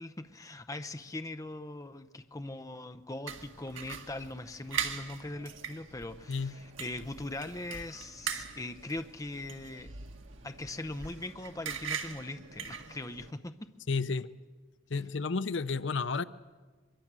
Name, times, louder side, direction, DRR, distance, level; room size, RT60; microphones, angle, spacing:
voice 1, 0.0-9.9 10.4-13.7, left 2 dB, 15° left, 10 dB, 0.7 m, -41 dB
sound 1, 3.3-13.3, right 6 dB, 80° right, 1.9 m, -41 dB
voice 2, 13.9-14.3 14.9-16.2, left 4 dB, 65° left, 14 dB, 0.7 m, -31 dB
23.0 x 22.5 x 7.5 m, 1.4 s
head